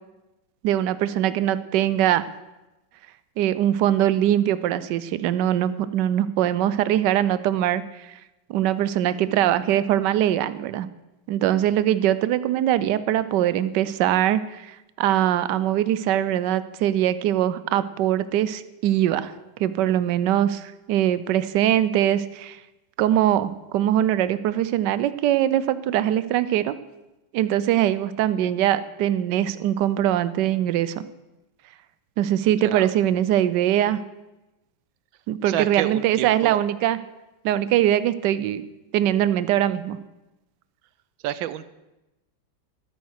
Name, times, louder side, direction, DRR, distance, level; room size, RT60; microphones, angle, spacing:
voice 1, 0.6-2.3 3.4-8.1 8.5-10.9 11.3-19.3 19.6-22.6 23.0-26.7 27.3-31.0 32.2-34.0 35.3-37.0 37.4-38.6 38.9-40.0, right 11 dB, 75° right, 15 dB, 1.2 m, -22 dB
voice 2, 35.4-36.6 41.2-41.6, right 12 dB, 90° right, 15 dB, 1.4 m, -28 dB
12.5 x 9.1 x 6.4 m, 1.0 s
omnidirectional pair, 2.1 m